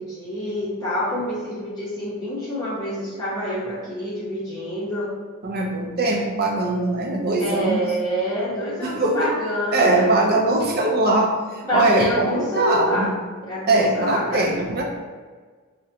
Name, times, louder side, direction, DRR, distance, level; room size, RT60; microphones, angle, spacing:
voice 1, 0.0-5.1 7.4-10.1 11.7-13.1 13.4-14.4, equal, 15° left, -9 dB, 0.6 m, -27 dB
voice 2, 5.4-7.8 8.8-9.3 9.7-13.1 13.7-14.8, right 2 dB, 45° right, 0 dB, 0.5 m, -21 dB
4.8 x 2.1 x 2.8 m, 1.5 s
head